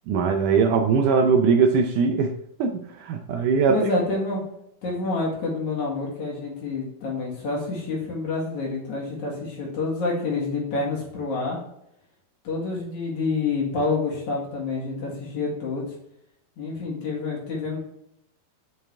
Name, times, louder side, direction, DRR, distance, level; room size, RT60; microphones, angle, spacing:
voice 1, 0.1-2.3 2.6-3.8, right 5 dB, 80° right, 5 dB, 1.9 m, -20 dB
voice 2, 3.7-4.4 4.8-11.6 12.4-15.9 16.6-17.8, left 3 dB, 55° left, -3 dB, 3.2 m, -28 dB
6.8 x 6.2 x 3.3 m, 0.78 s
omnidirectional pair, 4.2 m